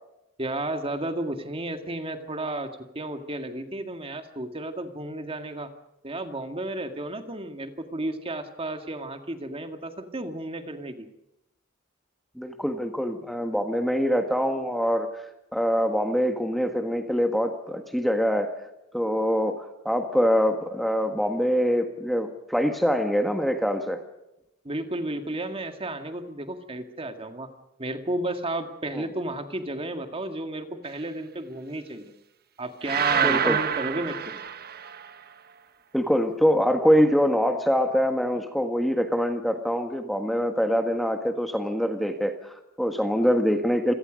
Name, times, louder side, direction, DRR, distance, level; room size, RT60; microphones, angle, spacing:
voice 1, 0.4-5.7 6.0-11.1 24.6-27.5 27.8-32.1 32.6-34.4, right 1 dB, 25° right, 7 dB, 2.0 m, -33 dB
voice 2, 12.4-15.1 15.5-18.5 18.9-24.0 28.9-29.0 33.2-33.6 35.9-43.9, equal, ahead, 5 dB, 1.6 m, -24 dB
sound 1, 32.8-35.1, right 8 dB, 45° right, 1.2 m, -26 dB
28.0 x 18.0 x 5.2 m, 0.88 s
head